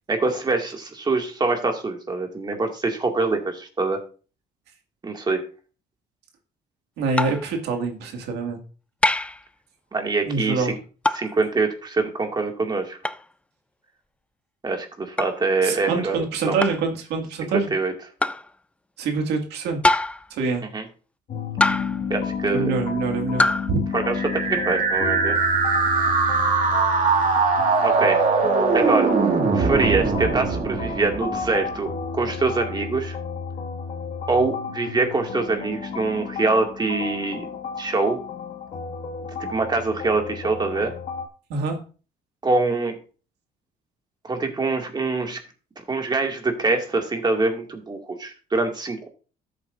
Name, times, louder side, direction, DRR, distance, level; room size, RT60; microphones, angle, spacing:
voice 1, 0.1-4.0 5.0-5.4 9.9-10.7 11.1-13.0 14.6-16.2 16.5-16.6 17.5-17.9 20.7-20.8 22.1-22.7 23.9-25.4 27.8-28.2 28.7-29.1 29.5-33.2 34.3-37.5 37.8-38.2 39.2-40.9 42.4-43.0 44.3-45.4 45.9-49.1, right 3 dB, 25° right, 3 dB, 2.1 m, -24 dB
voice 2, 7.0-8.6 10.3-10.8 15.6-17.7 19.0-20.0 20.3-20.7 22.5-23.9 41.5-41.8, right 4 dB, 80° right, 3 dB, 2.1 m, -25 dB
sound 1, 7.2-7.5 9.0-9.4 11.1-11.3 13.0-13.2 15.2-15.4 16.6-16.9 18.2-18.5 19.8-20.3 21.6-22.1 23.4-23.7, left 2 dB, 5° left, 0.4 m, -23 dB
sound 2, 21.3-41.3, left 5 dB, 55° left, 2.0 m, -32 dB
sound 3, 24.0-31.9, right 4 dB, 50° right, 2.3 m, -21 dB
13.0 x 7.7 x 2.6 m, 0.37 s
cardioid pair, 110°, 17 cm